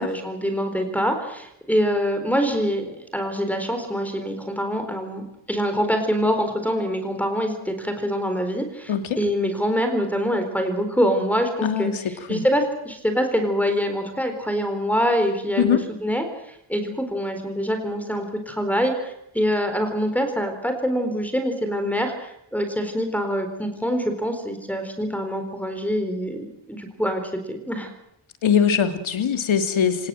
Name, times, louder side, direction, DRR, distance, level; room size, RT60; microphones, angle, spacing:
voice 1, 0.0-11.9 12.3-27.2 27.5-27.9, equal, 5° left, 6 dB, 4.1 m, -25 dB
voice 2, 11.6-12.0 12.3-12.4 15.6-15.9 28.4-30.1, left 8 dB, 75° left, 8 dB, 2.9 m, -21 dB
26.0 x 19.0 x 7.8 m, 0.78 s
wide cardioid pair, 145°, 47 cm